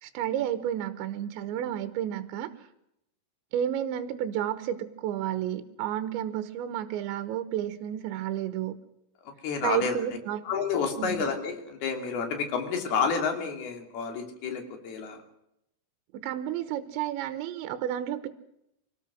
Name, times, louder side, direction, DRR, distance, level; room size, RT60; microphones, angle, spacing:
voice 1, 0.0-2.5 3.5-8.8 9.6-10.4 11.0-11.2 16.1-18.3, right 11 dB, 75° right, 10 dB, 3.1 m, -31 dB
voice 2, 9.4-10.0 10.4-15.2, left 5 dB, 55° left, 4 dB, 4.5 m, -30 dB
25.5 x 19.0 x 6.3 m, 0.80 s
omnidirectional pair, 5.9 m